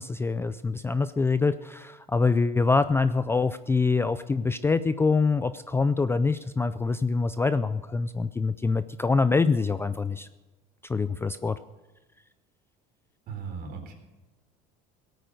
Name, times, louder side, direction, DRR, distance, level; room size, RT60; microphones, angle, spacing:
voice 1, 0.0-10.3 10.8-11.6, left 4 dB, 10° left, 13 dB, 0.4 m, -25 dB
voice 2, 13.3-13.9, right 5 dB, 50° right, 2 dB, 4.2 m, -37 dB
17.0 x 9.1 x 6.5 m, 1.2 s
cardioid pair, 130°, 20 cm